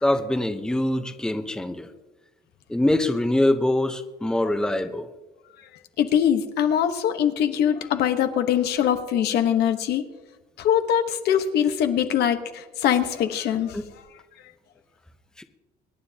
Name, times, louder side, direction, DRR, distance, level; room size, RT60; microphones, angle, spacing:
voice 1, 0.0-1.9 2.7-5.1 13.7-13.8 15.4-15.5, left 1 dB, 5° left, 8 dB, 0.8 m, -24 dB
voice 2, 6.0-10.0 10.6-13.8, left 9 dB, 75° left, 7 dB, 1.2 m, -22 dB
25.0 x 9.7 x 2.9 m, 1.1 s
cardioid pair, 110°, 17 cm